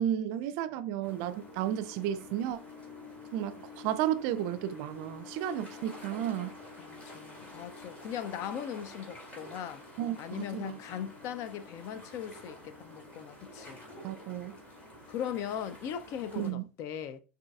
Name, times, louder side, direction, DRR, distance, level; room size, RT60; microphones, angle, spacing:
voice 1, 0.0-2.6 3.3-6.6 10.0-10.8 14.0-14.5 16.4-16.7, right 11 dB, 60° right, 0.4 m, -33 dB
sound 1, 1.0-16.5, left 2 dB, 20° left, 2.0 m, -48 dB
voice 2, 6.8-9.8 10.2-13.8 15.1-17.2, left 9 dB, 50° left, 0.5 m, -39 dB
6.1 x 2.7 x 2.3 m
hypercardioid pair, 90°, 7 cm